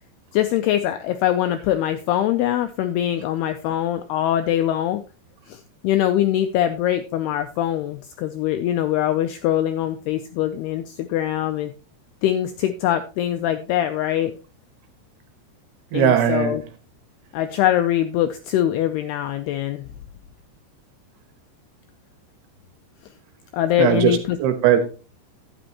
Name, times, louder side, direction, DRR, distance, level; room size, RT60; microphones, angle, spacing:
voice 1, 0.3-5.0 5.5-11.7 12.2-14.3 15.9-16.6 17.3-19.9 23.5-24.4, left 12 dB, 90° left, 2.3 m, -23 dB
voice 2, 15.9-16.6 23.8-24.9, right 9 dB, 70° right, 2.9 m, -19 dB
11.5 x 10.0 x 2.9 m
omnidirectional pair, 5.4 m